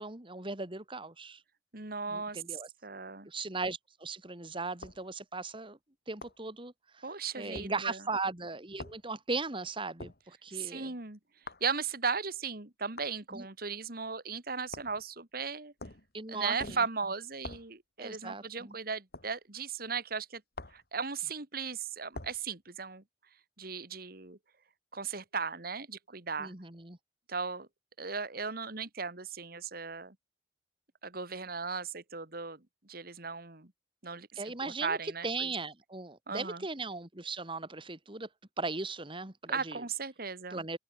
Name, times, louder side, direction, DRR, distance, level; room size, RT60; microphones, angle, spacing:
voice 1, 0.0-1.4 2.1-2.7 3.3-5.8 6.1-7.0 7.4-10.9 13.3-13.5 16.1-16.8 18.0-18.7 26.4-27.0 34.4-38.3 38.6-39.8 40.5-40.8, right 3 dB, 30° right, 2.2 m, -38 dB
voice 2, 1.7-2.4 2.8-3.3 7.0-8.0 10.5-11.2 11.6-15.7 16.3-20.4 20.7-23.0 23.6-24.4 24.9-26.5 27.3-27.7 28.0-30.2 31.0-33.7 34.0-35.5 36.3-36.6 39.5-40.6, right 5 dB, 55° right, 2.4 m, -37 dB
sound 1, 4.8-5.0 6.2-6.4 7.5-7.7 8.8-9.0 10.0-10.2 11.5-11.7 13.0-13.2 14.7-15.0 15.8-16.1 16.6-16.9 17.4-17.7 19.1-19.3 20.5-20.9 22.1-22.4, left 2 dB, 60° left, 3.0 m, -44 dB
open air
head